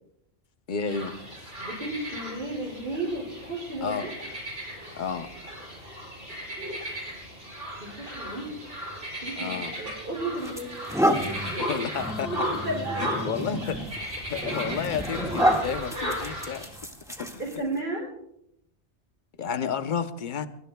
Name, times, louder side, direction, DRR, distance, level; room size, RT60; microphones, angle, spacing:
voice 1, 0.7-1.1 3.8-4.1 5.0-5.3 9.4-9.7 11.6-12.5 13.0-16.7 17.2-17.5 19.4-20.5, left 6 dB, 50° left, 10 dB, 1.0 m, -31 dB
sound 1, 0.9-16.7, equal, 80° right, 6.9 m, -35 dB
voice 2, 1.6-4.1 7.8-8.5 9.2-11.3 12.6-13.1 17.4-18.1, right 2 dB, 50° right, -6 dB, 6.0 m, -33 dB
Dog Growling and Running, 9.6-9.8 10.4-17.8, equal, 5° right, 1.8 m, -30 dB
24.0 x 23.0 x 2.3 m, 0.77 s
omnidirectional pair, 1.1 m